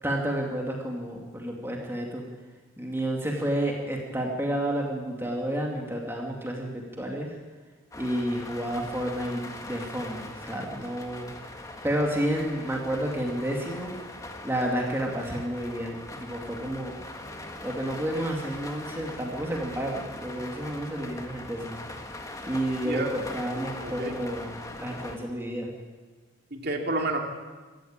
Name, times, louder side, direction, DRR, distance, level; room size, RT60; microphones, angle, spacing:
voice 1, 0.0-2.2 2.8-7.3 7.9-11.3 11.8-14.0 14.4-16.9 17.6-21.8 22.4-25.7, right 1 dB, 10° right, 0 dB, 2.4 m, -30 dB
sound 1, 7.9-25.2, left 1 dB, 15° left, 1.7 m, -41 dB
voice 2, 23.8-24.2 26.5-27.2, right 2 dB, 50° right, 2 dB, 2.8 m, -29 dB
25.5 x 14.0 x 8.8 m, 1.3 s
head